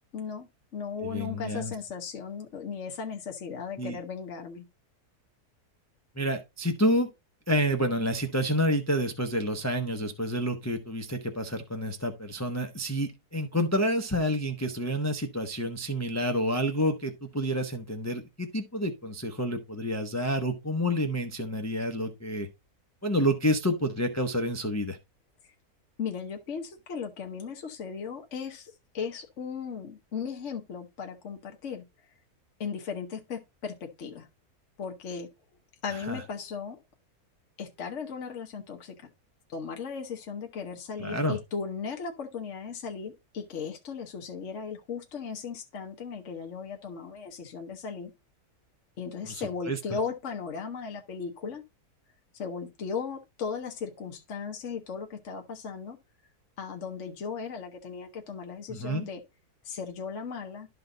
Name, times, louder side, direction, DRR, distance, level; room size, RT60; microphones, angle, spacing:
voice 1, 0.1-4.6 26.0-32.1 32.6-34.3 34.8-35.3 35.8-36.8 37.6-39.1 39.5-48.1 49.0-51.6 52.3-56.0 56.6-59.2 59.6-60.7, left 6 dB, 55° left, 1.3 m, -37 dB
voice 2, 1.0-1.7 3.8-4.0 6.2-7.1 7.5-22.5 23.0-25.0 36.1-36.2 41.0-41.4 49.3-49.8 58.7-59.1, equal, 15° left, 0.7 m, -29 dB
12.0 x 4.1 x 3.8 m
omnidirectional pair, 1.6 m